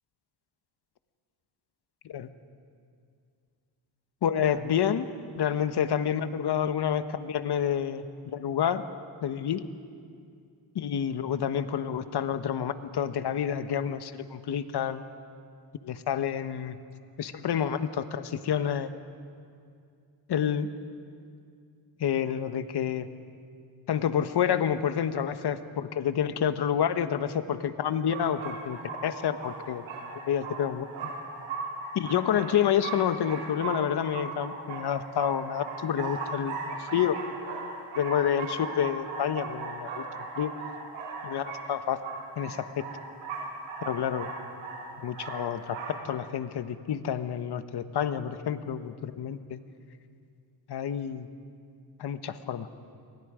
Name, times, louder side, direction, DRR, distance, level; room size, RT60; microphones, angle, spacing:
voice 1, 4.2-5.1 5.3-8.8 9.2-9.6 10.7-15.0 15.8-16.8 17.2-18.9 20.3-20.7 22.0-23.1 23.9-29.8 30.3-30.9 31.9-37.2 38.0-40.5 41.2-42.0 42.4-42.8 43.8-44.3 45.0-49.6 50.7-51.3 52.0-52.7, left 9 dB, 55° left, 11 dB, 1.3 m, -29 dB
sound 1, 28.1-46.0, right 4 dB, 85° right, 7.6 m, -38 dB
30.0 x 23.5 x 5.1 m, 2.3 s
cardioid pair, 100°, 46 cm